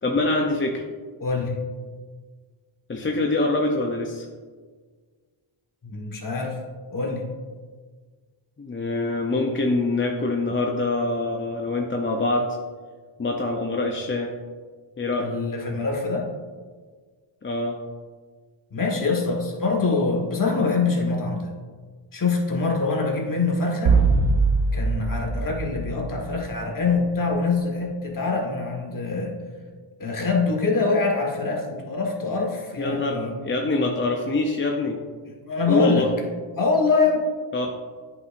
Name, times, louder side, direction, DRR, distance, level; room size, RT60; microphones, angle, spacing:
voice 1, 0.0-0.8 2.9-4.3 8.6-12.6 13.2-14.3 15.0-15.3 17.4-17.8 32.8-35.0 35.7-36.1 37.5-37.8, left 2 dB, 25° left, 1 dB, 0.6 m, -24 dB
voice 2, 1.2-1.6 5.8-6.6 6.9-7.3 15.2-16.3 18.7-21.5 22.1-24.0 24.7-29.3 30.0-33.3 35.4-36.1 36.5-37.2, left 4 dB, 40° left, 0 dB, 1.5 m, -24 dB
sound 1, 23.9-26.7, right 4 dB, 75° right, 0.7 m, -22 dB
9.2 x 5.7 x 2.5 m, 1.5 s
cardioid pair, 95°, 50 cm